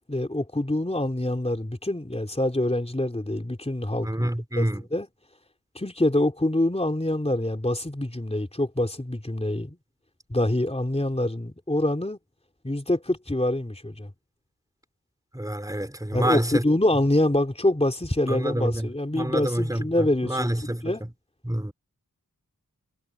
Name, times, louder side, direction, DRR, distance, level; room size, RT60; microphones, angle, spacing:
voice 1, 0.1-5.1 5.8-9.8 10.3-12.2 12.6-14.1 16.1-21.0, left 1 dB, 15° left, 3.6 m, -25 dB
voice 2, 4.0-4.8 15.3-16.6 18.3-18.9 19.1-20.9 21.4-21.7, right 1 dB, 10° right, 3.6 m, -27 dB
cardioid pair, 45°, 37 cm